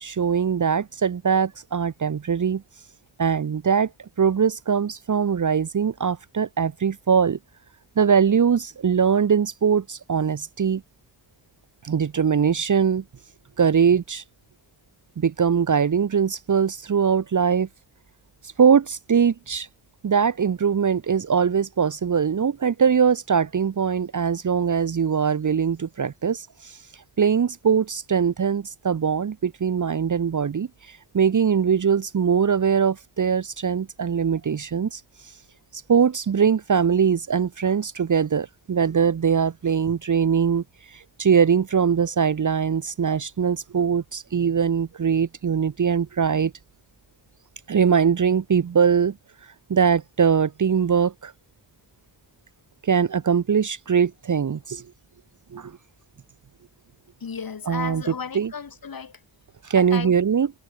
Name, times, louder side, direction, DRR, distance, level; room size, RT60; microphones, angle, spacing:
voice 1, 0.0-2.6 3.2-3.9 4.2-7.4 8.0-10.8 11.8-13.0 13.6-14.2 15.2-17.7 18.6-19.7 20.0-26.8 27.2-35.0 35.7-40.6 40.9-46.5 47.7-49.1 49.7-51.3 52.8-54.8 55.5-55.7 57.7-58.5 59.6-60.5, right 7 dB, 40° right, 1.0 m, -21 dB
voice 2, 57.2-59.1 59.8-60.1, left 6 dB, 45° left, 3.7 m, -34 dB
wide cardioid pair, 140°, 47 cm